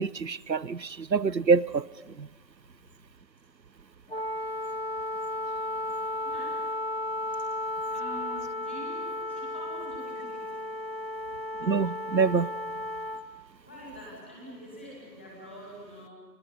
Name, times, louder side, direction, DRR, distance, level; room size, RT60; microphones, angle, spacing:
voice 1, 0.0-1.9 2.2-2.3 11.6-12.5, right 5 dB, 85° right, 20 dB, 0.8 m, -25 dB
Wind instrument woodwind instrument, 4.1-13.3, left 1 dB, 35° left, 1.4 m, -34 dB
voice 2, 6.2-7.1 7.9-10.6 13.6-16.1, equal, 5° left, -4 dB, 2.3 m, -45 dB
29.5 x 26.5 x 5.5 m, 1.3 s
figure-of-eight pair, 165°, 50 cm